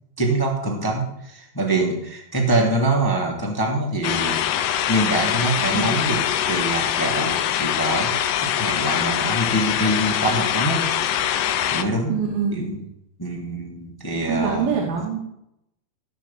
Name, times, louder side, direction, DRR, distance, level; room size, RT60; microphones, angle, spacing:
voice 1, 0.2-10.9 11.7-12.2 12.5-12.9 13.2-14.7, right 1 dB, 5° left, 0 dB, 2.0 m, -24 dB
sound 1, 4.0-11.8, left 10 dB, 70° left, 2.3 m, -23 dB
voice 2, 5.6-6.0 12.1-12.6 14.3-15.2, right 6 dB, 65° right, -1 dB, 4.5 m, -24 dB
17.0 x 6.9 x 8.6 m, 0.78 s
omnidirectional pair, 4.7 m